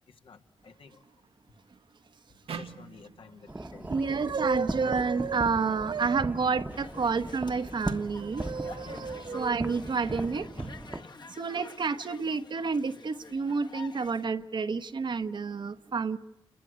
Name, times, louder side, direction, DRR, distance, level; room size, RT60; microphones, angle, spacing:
voice 1, 0.6-1.0 2.5-4.0 8.8-9.2 10.6-10.7 11.0-11.2, left 5 dB, 70° left, 5 dB, 1.9 m, -51 dB
sound 1, 2.5-5.7, right 7 dB, 90° right, 1.2 m, -46 dB
sound 2, 3.5-11.0, right 2 dB, 20° right, 1.1 m, -38 dB
voice 2, 3.9-10.5 11.4-16.2, right 5 dB, 55° right, 11 dB, 1.1 m, -29 dB
sound 3, 6.7-14.3, left 4 dB, 50° left, 1.6 m, -49 dB
28.5 x 21.0 x 8.2 m, 0.87 s
wide cardioid pair, 100°, 9 cm